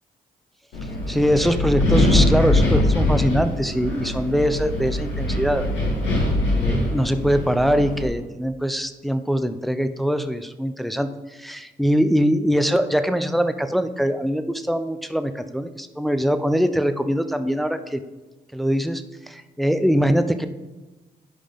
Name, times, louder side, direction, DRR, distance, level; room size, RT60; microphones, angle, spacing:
Wind, 0.7-8.1, left 1 dB, 80° left, 2.4 m, -22 dB
voice 1, 1.1-5.7 6.5-18.0 18.5-20.5, equal, ahead, 9 dB, 0.6 m, -22 dB
10.0 x 4.9 x 3.8 m, 1.1 s
supercardioid pair, 50°, 18 cm